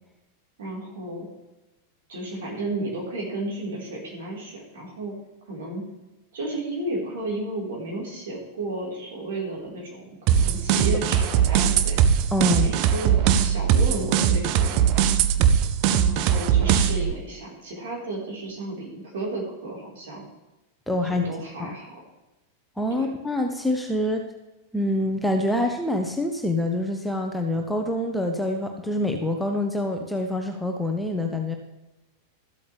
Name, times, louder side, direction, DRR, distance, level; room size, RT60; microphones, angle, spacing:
voice 1, 0.6-1.3 2.1-5.1 5.5-5.8 6.3-12.0 12.5-14.9 15.9-20.3 21.0-22.0 22.9-23.1, right 1 dB, 60° right, -3 dB, 4.2 m, -33 dB
sound 1, 10.3-17.1, right 8 dB, 45° right, 0.6 m, -20 dB
voice 2, 12.3-12.7 20.9-21.3 21.6-21.7 22.8-24.2 24.7-31.6, left 1 dB, ahead, 3 dB, 1.0 m, -26 dB
13.5 x 8.3 x 3.4 m, 1.0 s
figure-of-eight pair, 90°, 0 cm